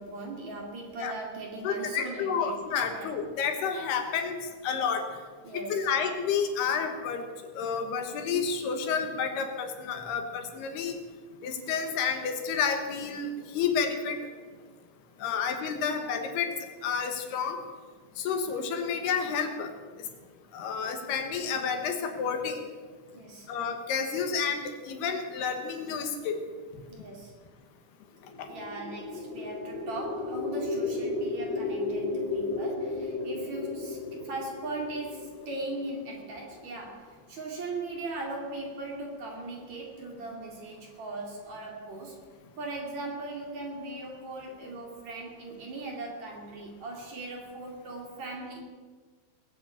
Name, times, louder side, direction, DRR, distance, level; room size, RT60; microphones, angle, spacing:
voice 1, 0.0-3.2 5.4-5.9 23.1-23.5 26.9-27.4 28.5-42.2 42.6-48.6, right 2 dB, 50° right, 0 dB, 3.3 m, -39 dB
voice 2, 1.6-4.4 4.6-5.0 5.5-7.2 7.5-11.0 11.4-14.2 15.2-16.5 16.8-17.6 18.2-19.7 20.5-22.6 23.5-26.4 28.4-28.5, left 6 dB, 75° left, 5 dB, 3.3 m, -30 dB
sound 1, 28.2-36.3, left 3 dB, 60° left, 4.3 m, -34 dB
20.0 x 7.7 x 8.3 m, 1.5 s
omnidirectional pair, 4.8 m